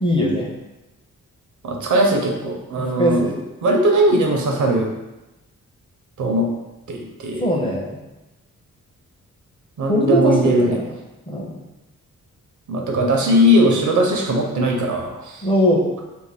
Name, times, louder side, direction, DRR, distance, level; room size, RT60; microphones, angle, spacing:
voice 1, 0.0-0.5 2.8-3.4 7.4-8.0 9.9-10.8 11.3-11.5 15.4-15.8, left 1 dB, 15° left, -1 dB, 0.6 m, -20 dB
voice 2, 1.6-3.2 3.6-4.9 6.2-6.5 6.9-7.5 9.8-10.8 12.7-15.4, equal, 65° right, 1 dB, 0.6 m, -19 dB
2.6 x 2.1 x 3.4 m, 1.0 s
cardioid pair, 70°, 33 cm